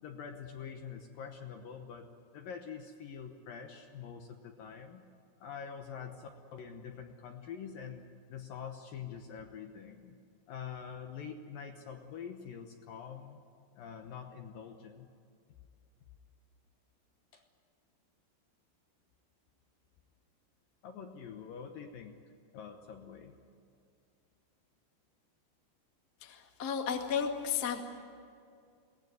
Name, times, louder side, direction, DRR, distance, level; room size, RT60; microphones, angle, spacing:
voice 1, 0.0-2.1 2.3-5.0 5.4-10.2 10.5-13.4 13.8-15.1 17.3-17.4 20.8-22.2 22.5-23.3, left 7 dB, 70° left, 4 dB, 2.3 m, -45 dB
voice 2, 26.2-27.8, left 7 dB, 45° left, 3 dB, 1.2 m, -33 dB
22.0 x 18.0 x 9.4 m, 2.4 s
omnidirectional pair, 5.1 m